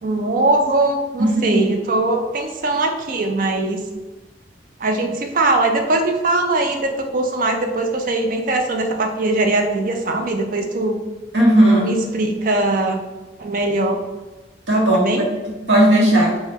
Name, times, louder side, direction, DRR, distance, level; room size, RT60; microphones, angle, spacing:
voice 1, 0.0-3.8 4.8-11.0 11.8-13.0 13.4-14.0 14.9-15.3, right 2 dB, 45° right, 4 dB, 0.4 m, -21 dB
voice 2, 1.2-1.6 11.3-11.9 14.7-15.1 15.4-16.3, right 1 dB, 70° right, -3 dB, 0.9 m, -15 dB
2.8 x 2.2 x 3.5 m, 1.2 s
head